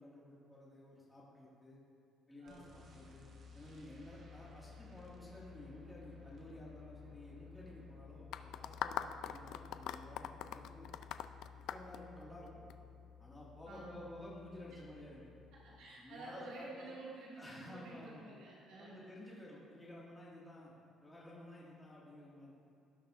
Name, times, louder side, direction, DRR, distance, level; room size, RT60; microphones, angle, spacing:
voice 1, 0.0-1.8 2.3-3.3 3.5-10.9 11.7-12.7 13.2-15.3 16.0-16.9 17.4-18.4 18.8-20.7 21.0-22.5, left 1 dB, 5° left, -7 dB, 1.9 m, -53 dB
voice 2, 2.4-2.8 13.7-14.0 15.5-19.4, right 2 dB, 85° right, -7 dB, 2.0 m, -51 dB
sound 1, 2.5-15.8, left 6 dB, 40° right, 1.1 m, -56 dB
sound 2, 8.3-12.7, left 10 dB, 65° left, 0.3 m, -41 dB
17.5 x 6.5 x 2.5 m, 2.6 s
cardioid pair, 170°, 0 cm